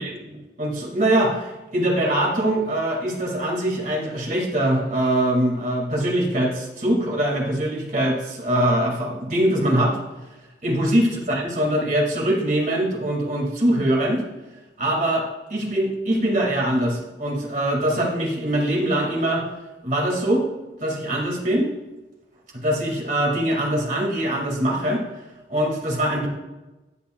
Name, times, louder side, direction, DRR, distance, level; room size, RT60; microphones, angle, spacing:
voice 1, 0.0-10.0 10.6-14.2 14.8-19.5 19.8-20.5 20.8-21.7 22.5-25.0 25.5-26.3, right 1 dB, 45° right, -1 dB, 2.0 m, -23 dB
13.0 x 8.5 x 2.3 m, 1.1 s
head